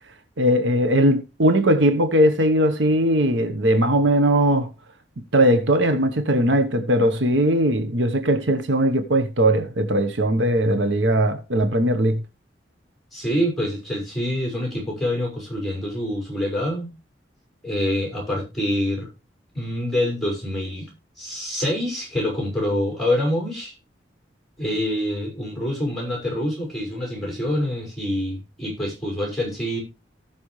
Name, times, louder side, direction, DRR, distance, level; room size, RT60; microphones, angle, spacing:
voice 1, 0.4-4.7 5.3-12.2, right 1 dB, 85° right, 1.2 m, -19 dB
voice 2, 13.1-16.9 17.6-19.1 19.5-20.9 21.2-23.7 24.6-29.8, left 1 dB, ahead, 5.9 m, -26 dB
18.0 x 6.1 x 3.2 m
head